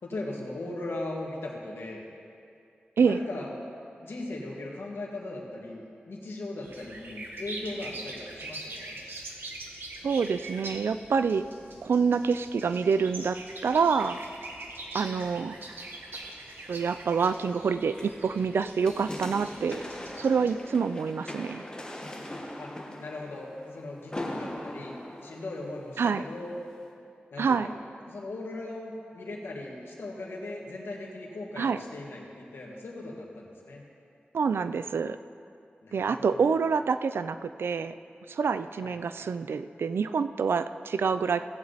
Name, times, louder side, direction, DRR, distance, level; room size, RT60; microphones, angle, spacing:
voice 1, 0.0-2.0 3.0-3.5 4.0-9.0 15.2-15.4 22.6-26.5 27.3-27.8 28.1-33.8 35.8-36.6 38.8-39.0, left 2 dB, 85° left, -2 dB, 1.8 m, -39 dB
sound 1, 6.6-20.5, right 2 dB, 70° right, 1.2 m, -43 dB
voice 2, 10.0-11.5 11.8-13.4 13.6-14.2 14.9-15.6 16.7-19.8 20.2-21.6 26.0-26.2 27.4-27.7 31.6-31.8 34.3-35.2 35.9-37.9 38.3-41.5, right 5 dB, 90° right, 12 dB, 0.4 m, -27 dB
sound 2, 14.9-26.2 26.7-26.8, left 1 dB, 20° left, 1.3 m, -42 dB
16.5 x 8.1 x 4.0 m, 2.5 s
wide cardioid pair, 110°, 4 cm